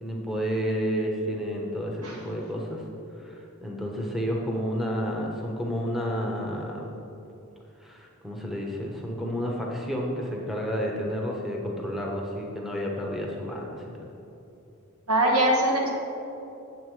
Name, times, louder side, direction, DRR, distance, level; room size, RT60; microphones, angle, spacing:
voice 1, 0.0-2.8 3.2-6.9 7.8-14.1, equal, ahead, -2 dB, 0.9 m, -31 dB
voice 2, 15.1-15.9, right 1 dB, 80° right, -1 dB, 1.7 m, -22 dB
9.3 x 7.4 x 4.7 m, 2.9 s
head